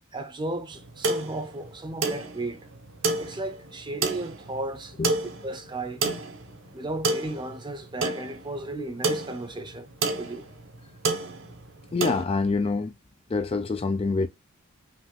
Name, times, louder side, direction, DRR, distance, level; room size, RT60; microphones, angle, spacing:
voice 1, 0.1-2.6 3.2-4.9 5.4-6.0 6.7-9.9 10.2-10.5, right 2 dB, 20° right, 0.7 m, -34 dB
sound 1, 0.7-12.2, right 3 dB, 55° right, 1.0 m, -31 dB
voice 2, 11.9-12.9 13.3-14.3, left 4 dB, 25° left, 0.3 m, -26 dB
5.7 x 2.5 x 3.5 m
head